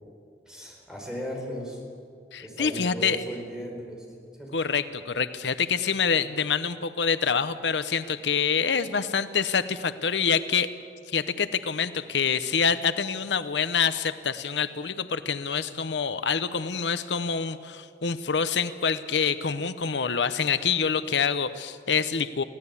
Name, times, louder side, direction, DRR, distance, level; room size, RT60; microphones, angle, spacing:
voice 1, 0.5-1.8 2.4-4.0 4.4-4.5, equal, 5° right, -1 dB, 4.5 m, -36 dB
voice 2, 2.3-3.2 4.5-10.7 11.1-22.4, left 6 dB, 90° left, 12 dB, 0.8 m, -26 dB
24.0 x 16.5 x 8.4 m, 2.3 s
head